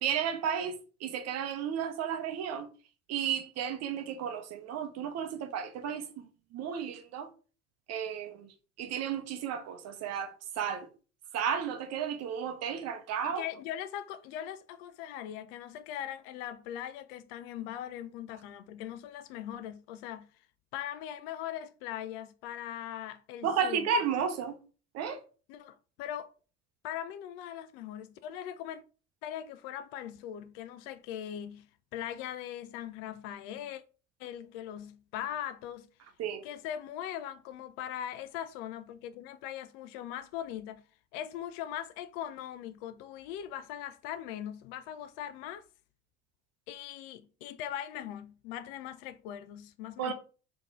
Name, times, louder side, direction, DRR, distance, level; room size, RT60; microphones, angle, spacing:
voice 1, 0.0-2.7 3.1-6.1 6.5-7.3 7.9-8.5 8.8-10.9 11.3-13.4 23.4-24.6 24.9-25.2 36.2-36.4 50.0-50.1, right 7 dB, 50° right, 0.8 m, -33 dB
voice 2, 13.2-20.3 20.7-23.9 25.5-26.3 26.8-28.8 29.2-33.8 34.2-35.9 36.4-40.8 41.1-45.7 46.7-50.1, left 11 dB, 60° left, 0.4 m, -40 dB
3.6 x 2.9 x 3.5 m
figure-of-eight pair, 55°, 35 cm